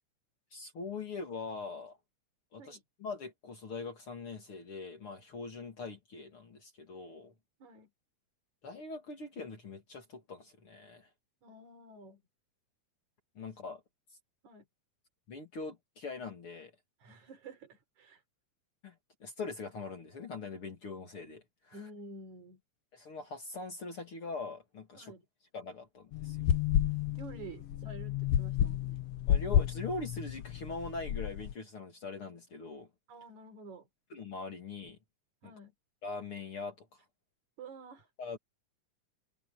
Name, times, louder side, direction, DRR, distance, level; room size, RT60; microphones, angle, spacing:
voice 1, 0.5-2.0 2.5-7.3 8.6-11.1 13.4-13.8 15.3-16.7 18.8-18.9 19.2-21.8 22.9-25.1 25.5-26.4 29.3-32.9 34.1-35.0 35.4-35.5 36.0-37.0 38.2-38.4, left 3 dB, 45° left, 3.0 m, -42 dB
voice 2, 11.4-12.2 14.4-14.7 17.0-18.2 21.7-22.6 25.0-25.2 26.9-29.0 33.1-33.9 35.4-35.7 37.6-38.1, right 3 dB, 65° right, 5.0 m, -50 dB
sound 1, 26.1-31.5, left 10 dB, 65° left, 1.6 m, -31 dB
omnidirectional pair, 3.6 m